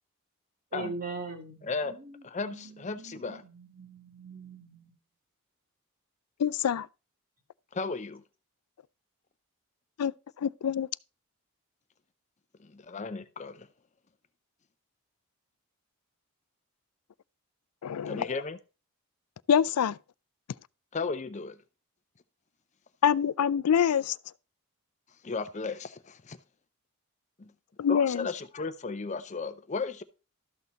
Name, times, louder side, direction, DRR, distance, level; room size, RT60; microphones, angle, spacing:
voice 1, 0.7-2.0 2.4-2.7 3.0-4.9, right 3 dB, 40° right, 2.4 m, -41 dB
voice 2, 1.6-2.0 2.2-3.4 7.7-8.2 12.6-13.7 18.0-18.6 20.9-21.6 25.2-26.4 27.4-27.5 27.9-30.0, left 4 dB, 30° left, 0.5 m, -35 dB
voice 3, 6.4-6.9 10.0-10.1 10.4-10.9 17.8-18.3 19.5-20.0 23.0-24.2 27.8-28.3, left 8 dB, 90° left, 0.4 m, -25 dB
13.0 x 6.4 x 4.0 m
head